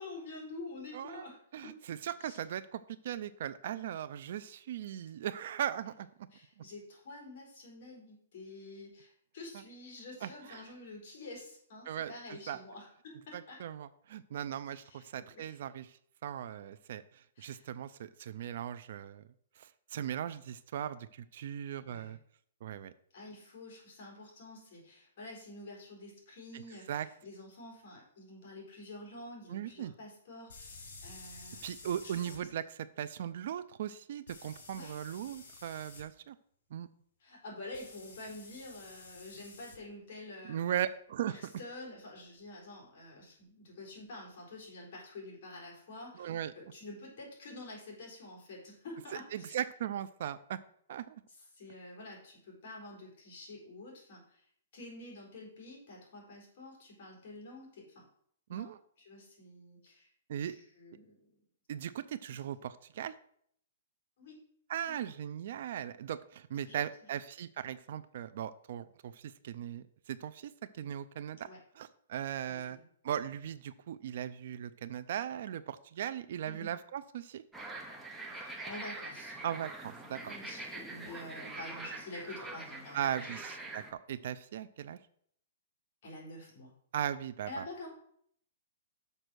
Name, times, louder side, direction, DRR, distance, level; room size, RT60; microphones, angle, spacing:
voice 1, 0.0-1.8 2.2-2.4 6.3-13.6 14.8-15.6 17.4-17.7 21.8-22.2 23.1-31.6 32.0-32.5 34.7-35.0 37.2-40.6 41.3-49.6 51.5-54.4 54.7-58.1 58.5-60.1 60.4-61.4 62.3-62.4 64.2-64.4 64.9-65.1 66.6-66.8 71.4-71.6 72.4-72.9 76.4-76.7 78.4-79.4 80.3-83.4 86.0-86.7 87.5-87.9, left 2 dB, 45° left, -1 dB, 3.9 m, -48 dB
voice 2, 0.9-1.3 1.5-6.1 6.6-6.7 10.2-10.6 11.9-12.6 13.3-15.9 16.2-19.2 19.6-22.2 22.6-22.9 26.5-26.6 26.9-27.1 29.5-29.9 31.6-32.6 33.0-36.4 36.7-36.9 40.5-41.5 46.2-46.5 49.3-50.6 50.9-51.2 58.5-58.8 60.3-60.5 61.7-63.1 64.7-71.5 71.8-72.8 73.0-77.4 79.4-80.3 82.9-85.0 86.9-87.6, right 10 dB, 50° right, 15 dB, 0.4 m, -38 dB
sound 1, 27.1-27.2 30.5-32.4 34.3-36.0 37.7-39.8, left 3 dB, 65° left, 3.4 m, -52 dB
sound 2, 77.5-83.9, right 2 dB, 5° right, 0.8 m, -44 dB
6.6 x 5.4 x 6.2 m, 0.65 s
hypercardioid pair, 165°, 0 cm